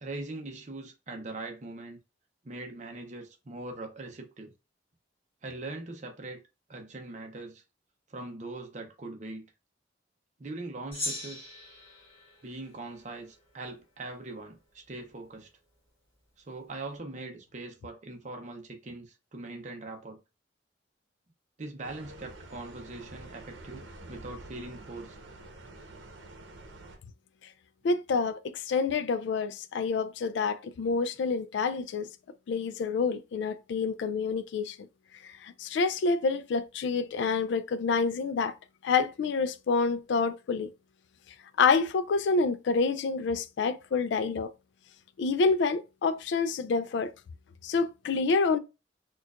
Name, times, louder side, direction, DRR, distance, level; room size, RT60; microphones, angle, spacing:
voice 1, 0.0-2.0 2.4-4.5 5.4-6.4 6.7-7.6 8.1-9.4 10.4-11.5 12.4-15.5 16.4-20.2 21.6-25.2, right 2 dB, 40° right, 0.6 m, -41 dB
Gong, 10.9-13.6, left 2 dB, 15° left, 2.1 m, -40 dB
sound 1, 21.8-27.0, right 2 dB, 90° right, 0.8 m, -48 dB
voice 2, 27.8-32.1 32.5-34.8 35.2-38.5 38.8-40.7 41.6-44.5 45.2-47.1 47.6-48.6, left 4 dB, 75° left, 0.3 m, -28 dB
4.4 x 2.3 x 2.4 m
head